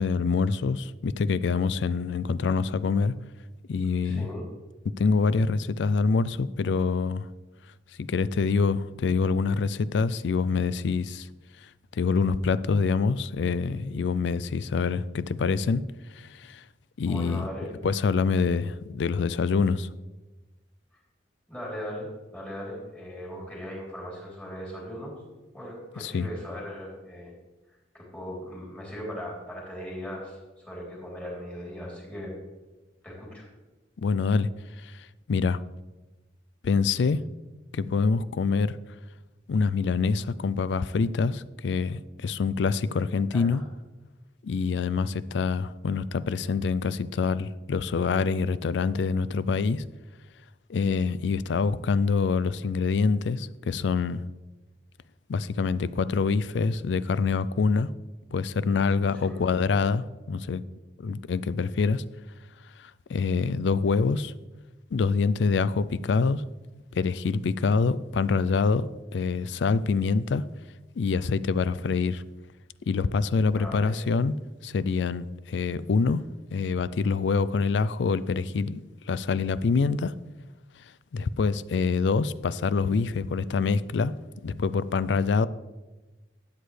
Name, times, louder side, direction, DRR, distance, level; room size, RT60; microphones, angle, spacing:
voice 1, 0.0-3.1 3.7-4.3 5.0-7.3 8.0-11.3 11.9-15.8 16.1-16.6 17.0-17.4 17.8-19.9 26.0-26.3 34.0-34.5 34.8-35.6 36.6-37.2 37.7-38.8 39.5-43.6 44.4-49.8 50.7-54.2 55.3-57.9 58.3-60.6 61.0-62.0 62.8-64.3 64.9-66.4 66.9-70.4 71.0-72.2 72.9-74.3 74.6-76.2 76.5-80.1 81.1-84.1 84.4-85.5, left 4 dB, 75° left, 0.4 m, -25 dB
voice 2, 4.0-4.5 17.0-17.7 21.5-25.1 25.5-27.3 27.9-32.3 33.0-33.4 43.3-43.6 59.2-59.4 73.5-73.9, equal, 10° left, 3.3 m, -38 dB
12.5 x 8.2 x 3.3 m
head